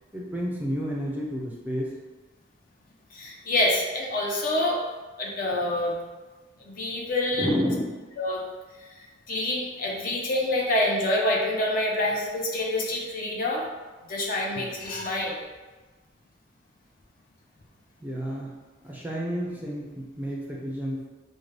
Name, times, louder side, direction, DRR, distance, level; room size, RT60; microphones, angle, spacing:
voice 1, 0.1-1.9 7.3-8.0 14.5-14.7 18.0-18.6 18.8-21.1, equal, 10° right, -4 dB, 0.5 m, -30 dB
voice 2, 3.1-4.8 5.2-6.0 6.6-7.5 8.2-8.4 8.8-13.7 14.0-15.4, left 1 dB, 45° left, -2 dB, 0.7 m, -27 dB
5.1 x 2.2 x 3.2 m, 1.3 s
head